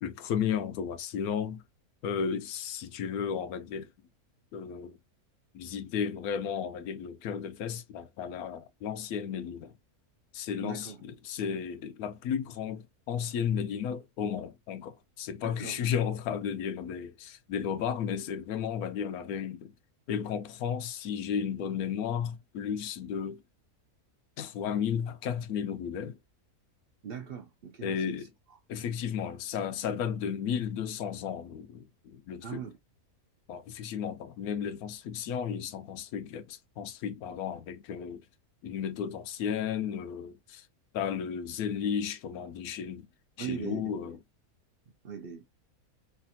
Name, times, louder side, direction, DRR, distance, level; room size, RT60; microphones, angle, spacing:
voice 1, 0.0-1.6 2.0-3.9 4.5-5.0 5.5-9.7 10.3-19.7 20.1-23.4 24.4-26.2 27.8-28.3 28.7-32.6 33.5-38.2 38.6-40.7 40.9-43.1 43.4-44.2, left 7 dB, 80° left, 1.1 m, -34 dB
voice 2, 10.6-11.0 15.4-15.9 27.0-28.3 32.4-32.8 43.4-44.0 45.0-45.5, right 7 dB, 55° right, 0.6 m, -40 dB
3.3 x 2.5 x 2.6 m
omnidirectional pair, 1.6 m